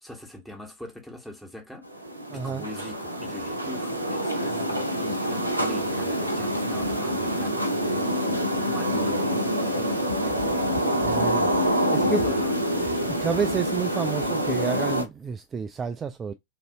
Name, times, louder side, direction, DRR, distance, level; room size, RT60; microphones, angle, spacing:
voice 1, 0.0-1.9 2.3-7.7 8.6-10.4 11.9-13.2, left 1 dB, 5° left, 1.2 m, -42 dB
sound 1, 1.8-15.0, equal, 85° right, 0.6 m, -26 dB
voice 2, 2.3-2.7 4.6-4.7 11.0-12.2 13.0-16.3, right 7 dB, 20° right, 0.3 m, -30 dB
3.7 x 2.6 x 2.8 m
figure-of-eight pair, 90°, 0 cm